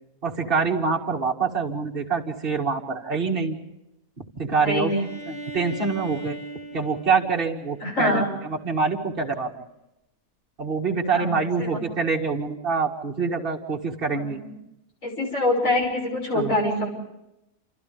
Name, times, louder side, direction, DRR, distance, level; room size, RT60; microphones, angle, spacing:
voice 1, 0.2-3.6 4.4-4.9 5.3-6.4 6.7-8.2 8.6-9.5 10.6-14.4 16.3-16.5, right 4 dB, 40° right, -1 dB, 2.3 m, -25 dB
voice 2, 4.6-5.0 7.8-8.3 11.1-11.8 14.1-14.6 15.0-16.9, left 1 dB, 60° left, 1 dB, 6.3 m, -25 dB
Bowed string instrument, 4.9-8.6, right 2 dB, 35° left, 3.1 m, -40 dB
29.0 x 28.0 x 3.5 m, 0.89 s
omnidirectional pair, 1.5 m